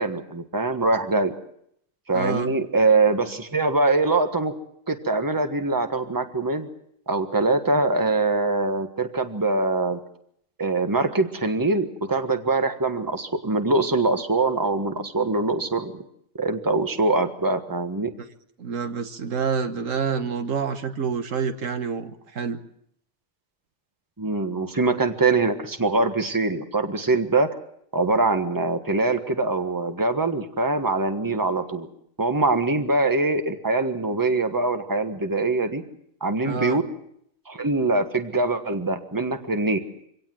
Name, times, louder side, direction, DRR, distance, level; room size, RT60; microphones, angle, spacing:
voice 1, 0.0-1.3 2.1-4.5 4.9-6.7 7.1-10.0 10.6-16.0 16.4-18.1 24.2-27.6 27.9-31.9 32.2-35.8 36.2-36.8 37.5-39.8, right 3 dB, 15° right, 7 dB, 1.4 m, -23 dB
voice 2, 2.1-2.5 18.6-22.6 36.4-36.8, right 6 dB, 75° right, 8 dB, 1.7 m, -28 dB
25.0 x 17.5 x 7.7 m, 0.71 s
omnidirectional pair, 1.4 m